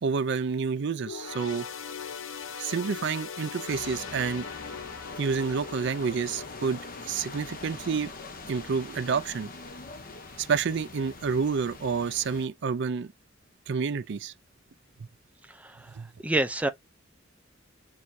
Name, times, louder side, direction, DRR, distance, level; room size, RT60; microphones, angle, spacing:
voice 1, 0.0-1.7 2.6-4.5 5.2-6.8 7.1-8.1 8.5-9.5 10.4-13.1 13.7-14.3 15.9-16.1, right 5 dB, 60° right, 0.4 m, -29 dB
sound 1, 1.0-8.7 9.1-9.3 10.2-10.3, left 6 dB, 80° left, 0.7 m, -41 dB
sound 2, 3.7-12.5, left 3 dB, 45° left, 0.8 m, -43 dB
voice 2, 15.5-15.9 16.2-16.7, right 1 dB, 5° right, 0.5 m, -28 dB
6.3 x 2.7 x 2.7 m
head